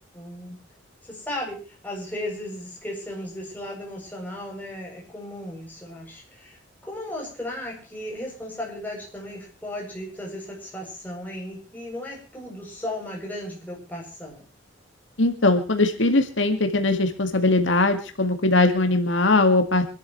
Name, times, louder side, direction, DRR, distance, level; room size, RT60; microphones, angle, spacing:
voice 1, 0.1-0.6 1.0-6.6 6.8-14.4, left 1 dB, 10° left, -2 dB, 7.7 m, -35 dB
voice 2, 15.2-19.9, left 2 dB, 70° left, 6 dB, 2.0 m, -20 dB
26.5 x 12.5 x 3.2 m, 0.37 s
head